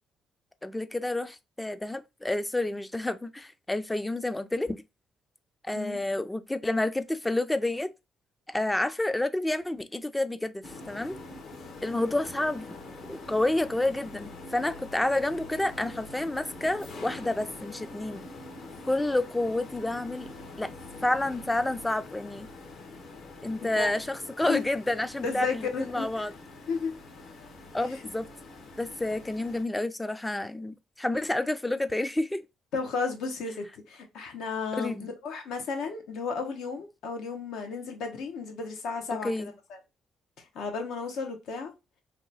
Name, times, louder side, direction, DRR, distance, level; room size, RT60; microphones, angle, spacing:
voice 1, 0.6-4.8 5.6-7.9 8.5-11.2 11.8-12.6 13.1-18.2 18.8-20.3 20.6-20.7 21.0-22.5 23.4-26.3 27.7-28.3 28.8-32.4 34.7-35.1 39.2-39.5, left 1 dB, 10° left, 0.3 m, -29 dB
sound 1, 10.6-29.6, left 2 dB, 65° left, 1.1 m, -44 dB
voice 2, 25.2-26.3 26.7-26.9 27.9-28.0 32.7-39.8 40.4-41.7, left 5 dB, 85° left, 0.9 m, -34 dB
2.9 x 2.3 x 3.9 m
cardioid pair, 90°, 0 cm